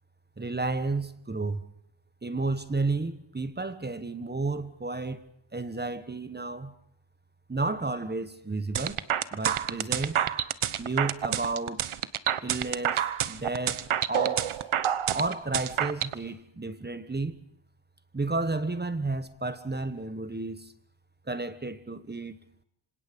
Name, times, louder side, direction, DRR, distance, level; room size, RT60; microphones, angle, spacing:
voice 1, 0.4-1.6 2.2-5.2 5.5-6.7 7.5-9.0 9.3-10.2 10.8-11.8 12.4-14.5 15.1-17.4 18.1-20.7 21.3-22.4, right 3 dB, 20° right, 1.3 m, -32 dB
sound 1, 8.7-16.1, right 10 dB, 80° right, 1.2 m, -28 dB
26.5 x 26.5 x 5.3 m
wide cardioid pair, 120°, 48 cm